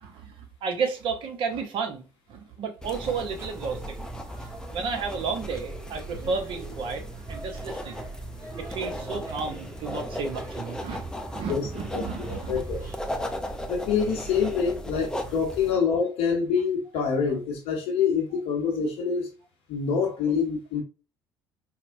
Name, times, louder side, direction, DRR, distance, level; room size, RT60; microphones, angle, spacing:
voice 1, 0.0-4.1 4.7-7.0 7.3-8.0 8.6-11.0 11.3-12.6 15.7-15.8 17.3-17.4, right 5 dB, 50° right, 5 dB, 0.7 m, -32 dB
sound 1, 2.8-15.7, equal, 5° left, 0.5 m, -37 dB
sound 2, 3.2-13.0, right 2 dB, 25° right, 1.6 m, -43 dB
voice 2, 11.9-12.9 13.7-19.3 19.7-20.8, left 6 dB, 55° left, -1 dB, 0.7 m, -26 dB
4.2 x 2.1 x 2.6 m, 0.33 s
figure-of-eight pair, 55°, 12 cm